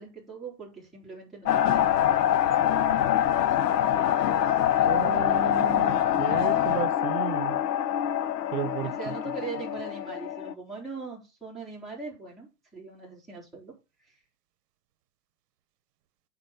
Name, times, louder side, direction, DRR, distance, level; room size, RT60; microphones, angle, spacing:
voice 1, 0.0-2.4 8.8-13.7, right 4 dB, ahead, 3.5 m, -41 dB
sound 1, 1.5-10.5, left 11 dB, 85° left, 1.0 m, -25 dB
voice 2, 4.9-7.6 8.5-9.1, right 12 dB, 80° right, 0.9 m, -34 dB
8.8 x 4.2 x 5.4 m
supercardioid pair, 160°, 47 cm